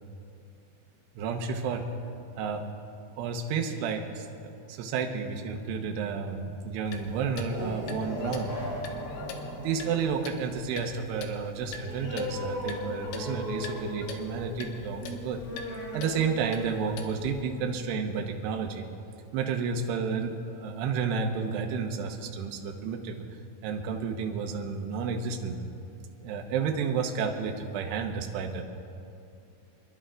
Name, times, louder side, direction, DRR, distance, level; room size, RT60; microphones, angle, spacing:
voice 1, 1.2-1.9 2.4-2.6 3.2-4.3 4.7-8.5 9.6-15.4 15.9-18.9 19.3-23.2 23.6-25.6 26.2-28.6, right 5 dB, 75° right, 2 dB, 2.6 m, -31 dB
Clock, 6.9-17.4, left 5 dB, 80° left, 3.6 m, -44 dB
sound 1, 7.4-18.5, left 1 dB, 35° left, 5.4 m, -39 dB
27.0 x 11.0 x 3.8 m, 2.5 s
omnidirectional pair, 5.8 m